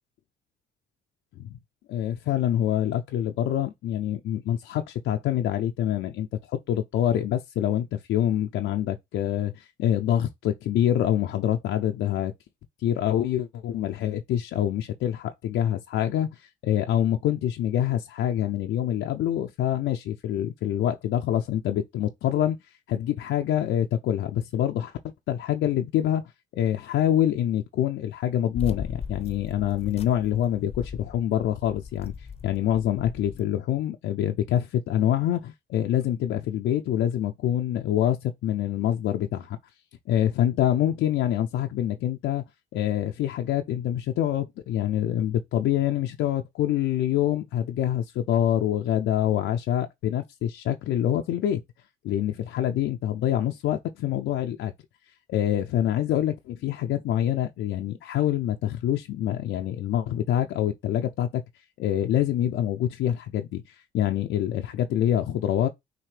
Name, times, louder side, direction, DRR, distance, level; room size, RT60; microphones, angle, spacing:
voice 1, 1.9-12.3 12.8-22.6 22.9-25.0 25.3-26.2 26.5-32.1 32.4-39.6 40.1-42.4 42.7-51.6 52.0-54.7 55.3-61.4 61.8-65.7, left 11 dB, 75° left, 0.5 m, -26 dB
sound 1, 28.5-33.4, left 6 dB, 30° left, 0.6 m, -38 dB
5.8 x 2.7 x 3.3 m
cardioid pair, 90°, 20 cm